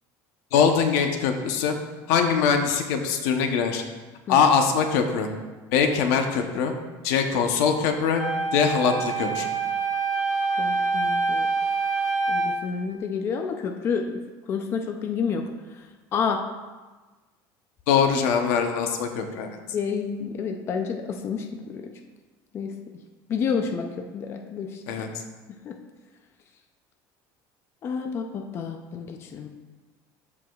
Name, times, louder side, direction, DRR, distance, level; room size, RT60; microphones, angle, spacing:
voice 1, 0.5-1.7 2.1-3.8 4.3-5.3 5.7-6.7 7.0-8.2 8.5-9.5 17.9-19.5 24.9-25.1, left 6 dB, 85° left, 5 dB, 0.9 m, -22 dB
Wind instrument woodwind instrument, 8.2-12.6, right 4 dB, 10° right, 1.2 m, -26 dB
voice 2, 10.6-11.5 12.3-14.2 14.5-15.5 15.8-15.9 16.1-16.4 19.7-21.9 22.5-22.7 23.3-24.8 25.6-25.8 27.8-29.5, left 6 dB, 30° left, 4 dB, 0.5 m, -29 dB
13.5 x 4.9 x 2.4 m, 1.3 s
cardioid pair, 170°, 9 cm